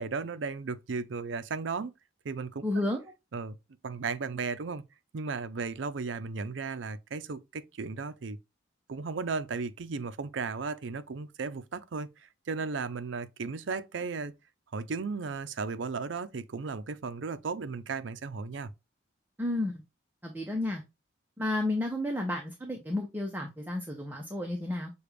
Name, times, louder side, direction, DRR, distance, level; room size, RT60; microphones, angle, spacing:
voice 1, 0.0-1.9 2.2-2.6 3.3-3.6 3.8-4.8 5.1-8.4 8.9-14.3 14.7-18.7, right 4 dB, 75° right, 0.5 m, -35 dB
voice 2, 2.6-3.0 19.4-19.8 20.2-20.8 21.4-24.9, left 1 dB, 10° right, 0.7 m, -32 dB
6.6 x 2.3 x 3.1 m
head